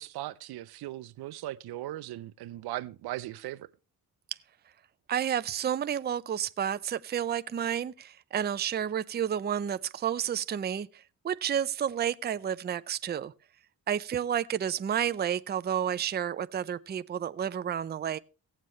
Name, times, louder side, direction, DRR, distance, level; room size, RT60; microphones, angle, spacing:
voice 1, 0.0-3.7, right 15 dB, 75° right, 0.6 m, -38 dB
voice 2, 5.1-13.3 13.9-18.2, right 9 dB, 25° right, 0.5 m, -31 dB
17.5 x 7.4 x 3.1 m
cardioid pair, 85°, 38 cm